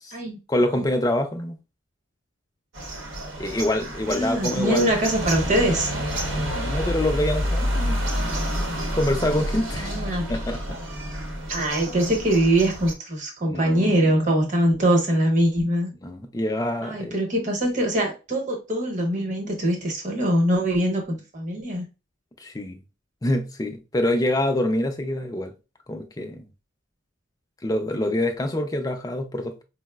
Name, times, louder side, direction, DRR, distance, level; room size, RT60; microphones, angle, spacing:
voice 1, 0.5-1.6 3.4-4.9 6.2-8.0 8.9-9.9 10.3-10.8 11.5-11.6 13.4-14.0 16.0-17.1 22.4-22.8 23.2-25.5 25.9-26.5 27.6-29.5, left 1 dB, 20° left, 0.4 m, -26 dB
sound 1, 2.7-12.9, equal, 75° right, 0.8 m, -29 dB
voice 2, 4.1-5.9 9.8-10.3 11.5-15.9 16.8-21.8, right 1 dB, 40° right, 0.9 m, -23 dB
4.5 x 2.0 x 2.2 m
head